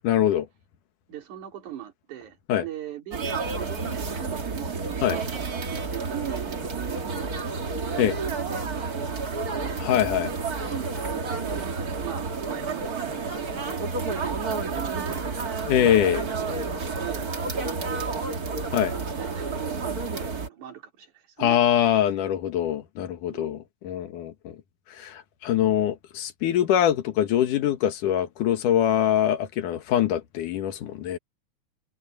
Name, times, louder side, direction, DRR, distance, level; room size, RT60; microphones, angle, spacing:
voice 1, 0.0-0.5 2.5-2.6 5.0-5.2 8.0-8.1 9.8-10.3 15.7-16.3 18.7-18.9 21.4-23.6 23.8-24.6 24.9-31.2, left 10 dB, 75° left, 3.0 m, -23 dB
voice 2, 1.1-3.2 3.5-9.8 10.7-13.5 14.1-15.7 16.1-21.6 23.3-23.6, right 11 dB, 65° right, 4.5 m, -41 dB
sound 1, 3.1-20.5, right 4 dB, 35° right, 2.0 m, -30 dB
omnidirectional pair, 3.7 m